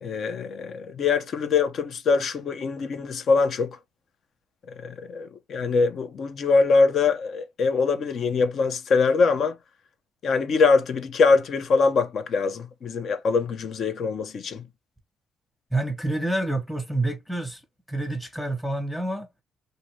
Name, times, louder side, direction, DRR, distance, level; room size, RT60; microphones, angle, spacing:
voice 1, 0.0-3.8 4.8-9.6 10.2-14.6, left 4 dB, 60° left, 0.6 m, -23 dB
voice 2, 15.7-17.6 17.9-19.3, right 2 dB, 10° left, 1.1 m, -28 dB
2.8 x 2.6 x 3.0 m
cardioid pair, 90°, 0 cm